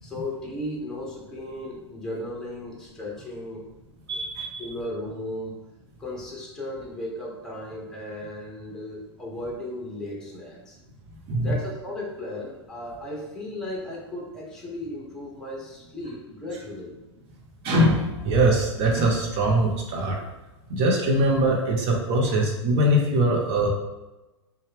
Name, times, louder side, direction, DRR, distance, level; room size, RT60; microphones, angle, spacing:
voice 1, 0.0-3.7 4.1-4.2 4.6-5.5 6.0-10.8 11.4-16.9 22.3-22.4, left 1 dB, 5° left, -3 dB, 0.9 m, -35 dB
voice 2, 4.1-4.6 11.3-11.5 17.6-20.2 20.7-23.7, right 1 dB, 40° right, 0 dB, 0.9 m, -22 dB
4.2 x 2.4 x 3.4 m, 1.1 s
hypercardioid pair, 110°, 15 cm